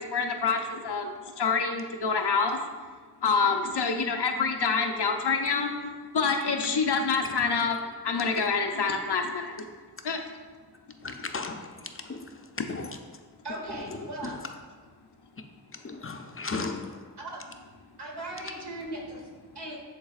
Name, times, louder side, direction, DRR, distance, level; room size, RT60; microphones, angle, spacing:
voice 1, 0.0-2.7 3.2-9.7 10.0-10.2, left 5 dB, 85° left, 4 dB, 0.7 m, -27 dB
voice 2, 11.0-12.4 12.7-13.0 13.9-14.4 15.7-17.0, left 3 dB, 35° left, 4 dB, 0.5 m, -36 dB
voice 3, 13.4-14.4 17.2-17.4 18.0-19.8, right 1 dB, 85° right, -2 dB, 1.4 m, -38 dB
9.8 x 3.9 x 2.4 m, 1.5 s
wide cardioid pair, 75°, 39 cm